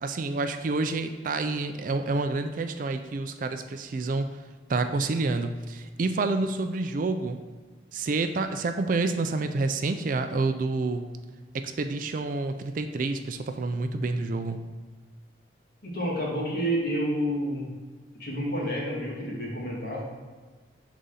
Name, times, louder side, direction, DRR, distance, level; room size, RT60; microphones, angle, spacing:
voice 1, 0.0-4.3 4.7-7.4 7.9-11.0 11.5-14.6, right 3 dB, 45° right, 8 dB, 0.4 m, -28 dB
voice 2, 15.8-17.6 18.1-20.0, equal, 55° left, -5 dB, 1.9 m, -29 dB
6.5 x 4.0 x 3.8 m, 1.4 s
head